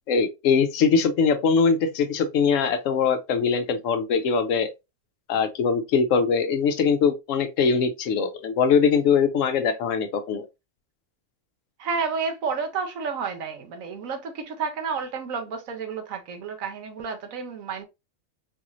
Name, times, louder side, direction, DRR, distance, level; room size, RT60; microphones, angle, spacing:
voice 1, 0.1-4.7 5.3-10.5, left 5 dB, 75° left, 1.0 m, -22 dB
voice 2, 11.8-17.8, right 5 dB, 85° right, 1.2 m, -30 dB
4.0 x 3.0 x 2.5 m
omnidirectional pair, 1.4 m